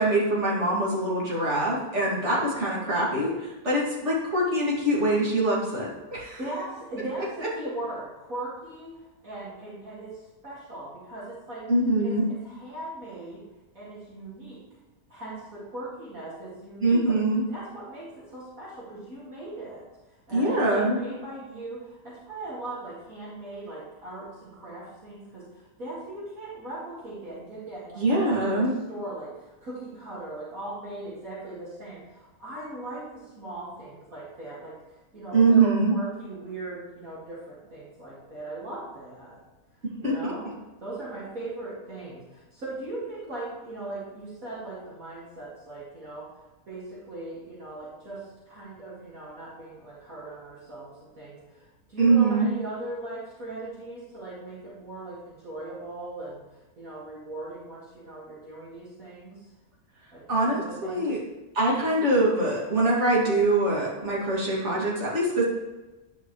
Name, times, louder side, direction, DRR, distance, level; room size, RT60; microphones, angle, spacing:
voice 1, 0.0-6.4 11.7-12.3 16.8-17.4 20.3-21.0 28.0-28.7 35.3-35.9 40.0-40.3 52.0-52.5 60.3-61.2 61.5-65.4, right 2 dB, 50° right, -5 dB, 2.6 m, -23 dB
voice 2, 6.4-10.1 10.4-11.7 12.0-13.4 13.7-14.6 15.1-17.1 17.5-19.8 20.3-34.8 35.1-39.4 40.0-40.4 40.8-46.3 46.7-59.5 60.1-61.1, right 2 dB, 65° right, -8 dB, 2.6 m, -39 dB
10.0 x 5.5 x 3.1 m, 1.1 s
omnidirectional pair, 1.6 m